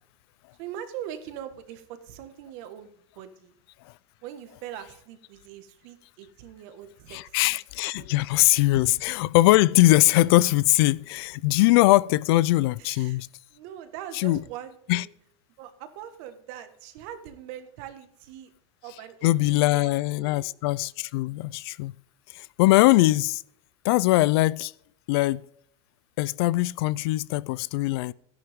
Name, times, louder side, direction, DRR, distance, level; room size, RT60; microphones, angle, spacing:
voice 1, 0.6-3.5 4.2-7.6 8.0-8.3 8.7-8.9 12.8-13.2 13.5-15.1 15.6-18.5 18.8-20.5, right 10 dB, 55° right, 1.6 m, -42 dB
voice 2, 7.1-13.3 14.2-14.4 14.9-15.0 19.2-21.9 22.3-23.4 23.8-24.7 25.1-25.4 26.2-28.1, left 18 dB, 60° left, 0.4 m, -21 dB
13.5 x 10.5 x 3.6 m
supercardioid pair, 160°, 15 cm